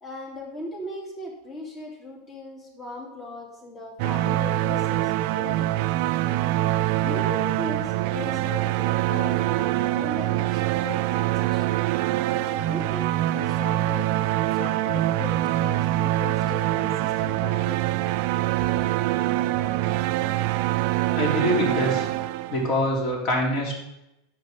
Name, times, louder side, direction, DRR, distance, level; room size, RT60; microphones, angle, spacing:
voice 1, 0.0-6.0 6.7-11.8 12.5-14.1 14.5-17.8 18.6-18.7, left 2 dB, 25° left, -1 dB, 3.1 m, -38 dB
sound 1, 4.0-22.9, right 15 dB, 55° right, 0.4 m, -24 dB
voice 2, 21.1-22.1 22.5-23.7, left 1 dB, 45° left, -1 dB, 3.5 m, -24 dB
10.5 x 8.2 x 3.6 m, 0.87 s
hypercardioid pair, 90°, 0 cm